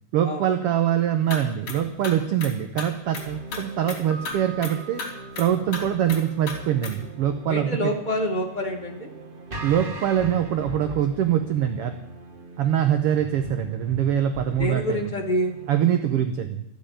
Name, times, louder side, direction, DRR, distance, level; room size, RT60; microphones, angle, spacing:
voice 1, 0.1-5.0 5.4-7.9 9.6-12.0 12.6-15.1 15.7-16.6, right 10 dB, 65° right, 8 dB, 1.5 m, -24 dB
sound 1, 1.3-1.4 1.7-1.8 2.0-2.9 3.1-3.3 3.5-3.6 3.9-4.0 4.3-4.4 4.6-4.7 5.0-5.1 5.4-5.8 6.1-6.2 6.5-6.6 6.8-6.9, left 4 dB, 50° left, 4.1 m, -33 dB
sound 2, 3.0-15.9, right 1 dB, 85° right, 0.4 m, -40 dB
Piano, 4.1-7.0, right 5 dB, 65° left, 1.9 m, -45 dB
voice 2, 7.5-9.1 14.6-15.6, equal, 30° left, 2 dB, 0.8 m, -27 dB
13.5 x 7.9 x 9.1 m, 0.81 s
omnidirectional pair, 3.4 m